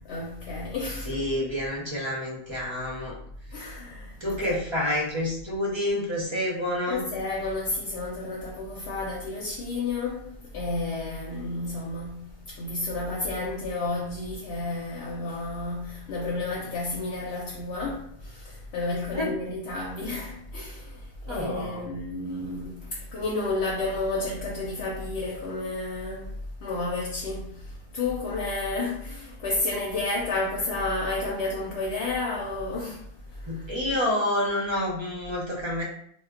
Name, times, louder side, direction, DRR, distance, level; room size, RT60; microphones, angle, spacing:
voice 1, 0.1-1.2 3.5-4.2 4.4-4.6 6.9-10.2 10.5-33.0 33.3-33.8, left 2 dB, 75° left, 0.9 m, -31 dB
voice 2, 1.1-3.2 4.2-7.0 19.1-19.3 21.3-21.8 33.5-35.8, left 1 dB, 30° right, 0.6 m, -28 dB
2.2 x 2.1 x 3.6 m
omnidirectional pair, 1.1 m